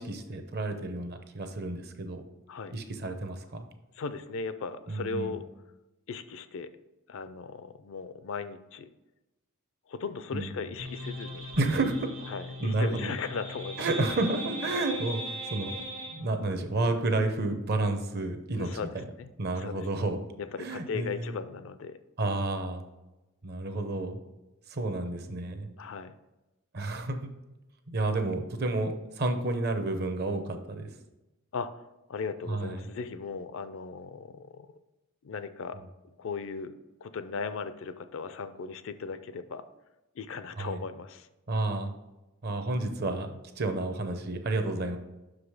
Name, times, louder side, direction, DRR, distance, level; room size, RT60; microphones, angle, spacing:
voice 1, 0.0-2.2 2.7-3.7 4.9-5.4 10.3-10.7 11.6-12.1 12.6-13.1 13.8-15.8 16.1-19.0 19.4-20.2 20.6-21.3 22.2-22.8 23.4-24.2 24.7-25.7 26.7-27.3 27.9-30.9 32.5-32.9 40.6-40.8 41.5-41.9 42.4-45.0, right 2 dB, 45° right, 7 dB, 0.7 m, -30 dB
voice 2, 4.0-5.4 6.1-6.7 7.1-8.9 9.9-11.5 12.3-13.9 14.9-15.0 18.5-19.3 19.6-19.9 20.4-22.0 25.8-26.1 31.5-31.7 32.1-34.7 35.2-35.8 36.2-36.7 37.0-39.6 40.2-41.3, left 5 dB, 60° left, 12 dB, 0.4 m, -37 dB
sound 1, 10.8-16.2, equal, 85° right, 1.3 m, -39 dB
5.9 x 4.9 x 4.8 m, 1.0 s
head